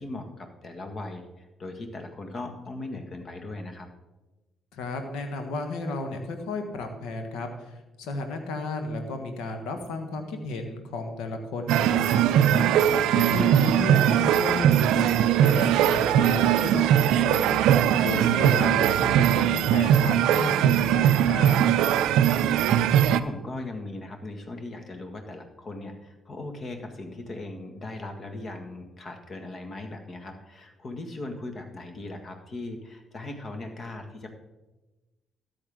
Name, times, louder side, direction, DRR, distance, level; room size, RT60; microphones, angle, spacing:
voice 1, 0.0-3.9 13.2-13.3 22.2-34.3, left 2 dB, 45° left, 5 dB, 1.7 m, -39 dB
voice 2, 4.7-21.6, left 2 dB, 70° left, 6 dB, 1.4 m, -33 dB
sound 1, 11.7-23.2, right 10 dB, 70° right, 0.4 m, -21 dB
13.5 x 8.7 x 3.6 m, 1.1 s
hypercardioid pair, 45°, 0 cm